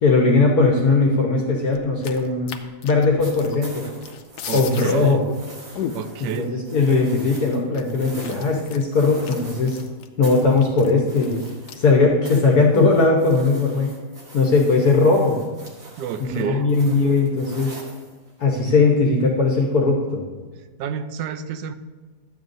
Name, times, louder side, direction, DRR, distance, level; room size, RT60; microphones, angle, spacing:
voice 1, 0.0-2.5 2.8-3.9 4.5-5.2 6.2-9.8 10.2-11.4 11.7-13.9 14.3-15.4 16.2-17.8 18.4-20.2, left 3 dB, 60° left, -1 dB, 1.4 m, -19 dB
sound 1, 1.7-3.7 4.0-4.9 5.3-5.4 5.8-6.3 6.9-7.0 7.3-12.0 12.2-12.4 12.7-13.4, left 8 dB, 80° left, 1.2 m, -34 dB
sound 2, 3.2-9.9 10.2-12.0 12.2-18.6 19.7-19.8, right 1 dB, 55° right, 2.1 m, -43 dB
voice 2, 4.4-5.2 5.9-6.5 16.0-16.7 20.8-21.7, right 7 dB, 80° right, 9 dB, 1.1 m, -29 dB
12.5 x 8.2 x 2.6 m, 1.3 s
omnidirectional pair, 1.8 m